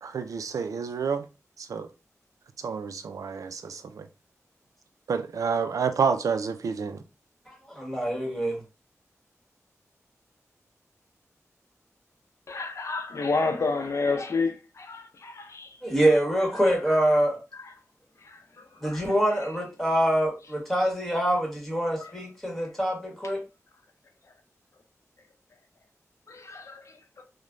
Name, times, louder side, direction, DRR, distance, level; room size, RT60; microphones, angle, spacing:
voice 1, 0.0-1.3 1.6-1.9 2.6-4.1 5.1-7.0, right 6 dB, 80° right, 0.3 m, -29 dB
voice 2, 7.5-8.6 15.8-17.4 18.8-23.4, right 1 dB, 5° left, 1.4 m, -25 dB
voice 3, 12.5-15.8 17.6-17.7 18.2-19.1 26.3-27.2, left 4 dB, 60° left, 0.5 m, -30 dB
3.1 x 2.1 x 2.4 m
cardioid pair, 55°, 6 cm